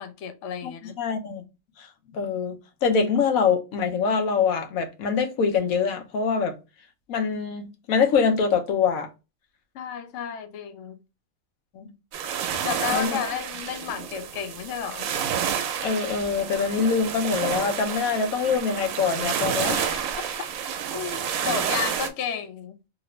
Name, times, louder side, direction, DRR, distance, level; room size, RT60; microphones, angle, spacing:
voice 1, 0.0-1.0 9.7-11.0 12.5-15.1 20.9-22.8, left 8 dB, 70° left, 0.8 m, -32 dB
voice 2, 1.0-1.4 1.8-2.6 2.8-6.5 7.1-9.1 11.7-11.9 12.9-13.2 15.8-20.1, left 5 dB, 85° left, 1.1 m, -24 dB
sound 1, 12.1-22.1, right 8 dB, 80° right, 1.0 m, -29 dB
2.9 x 2.6 x 3.0 m
omnidirectional pair, 1.5 m